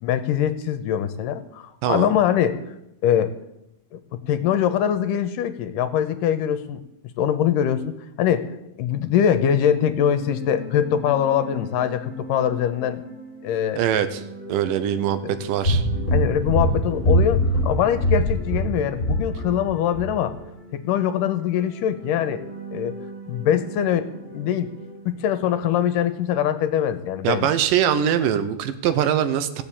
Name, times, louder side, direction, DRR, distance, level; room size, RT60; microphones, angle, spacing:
voice 1, 0.0-2.6 3.0-3.3 3.9-4.0 4.3-6.8 7.2-8.5 8.8-13.0 13.4-13.8 15.2-15.4 16.1-20.4 20.7-22.4 22.7-22.9 23.3-24.7 25.1-27.5, left 9 dB, 80° left, 10 dB, 2.3 m, -23 dB
voice 2, 1.8-2.1 13.8-14.2 14.5-15.9 27.2-29.6, right 9 dB, 80° right, 11 dB, 2.3 m, -22 dB
sound 1, 9.8-25.5, right 2 dB, 5° right, 6.5 m, -40 dB
sound 2, 15.6-19.7 19.9-20.1, equal, 15° left, 4.5 m, -22 dB
16.0 x 7.0 x 8.7 m, 0.86 s
omnidirectional pair, 4.1 m